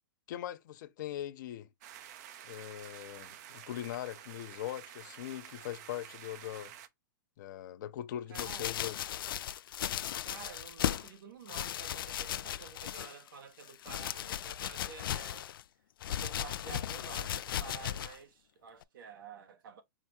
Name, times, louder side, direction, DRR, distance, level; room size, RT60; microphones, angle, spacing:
voice 1, 0.3-1.7 2.4-6.7 7.4-9.0, left 12 dB, 60° left, 0.8 m, -41 dB
sound 1, 1.8-6.9, right 10 dB, 50° right, 0.7 m, -50 dB
sound 2, 8.3-11.1 11.5-13.3 13.6-15.6 16.0-18.2 18.8-18.9, left 11 dB, 80° left, 0.4 m, -36 dB
voice 2, 8.3-8.9 10.2-15.5 16.0-19.8, right 7 dB, 70° right, 1.1 m, -50 dB
4.9 x 2.2 x 4.3 m
hypercardioid pair, 140°, 11 cm